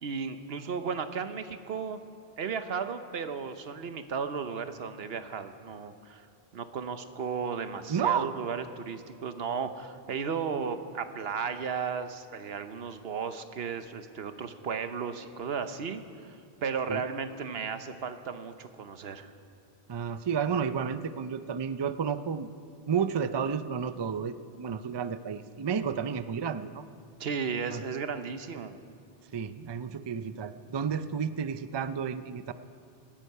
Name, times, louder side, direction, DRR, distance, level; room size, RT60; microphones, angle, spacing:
voice 1, 0.0-2.0 2.4-6.2 6.5-16.4 16.6-19.3 27.2-28.8, right 6 dB, 75° right, 9 dB, 1.1 m, -35 dB
voice 2, 7.9-8.3 16.9-17.0 19.9-22.5 22.9-26.8 27.7-27.8 29.3-32.5, right 7 dB, 40° right, 12 dB, 0.4 m, -31 dB
18.0 x 14.0 x 5.5 m, 2.5 s
omnidirectional pair, 1.0 m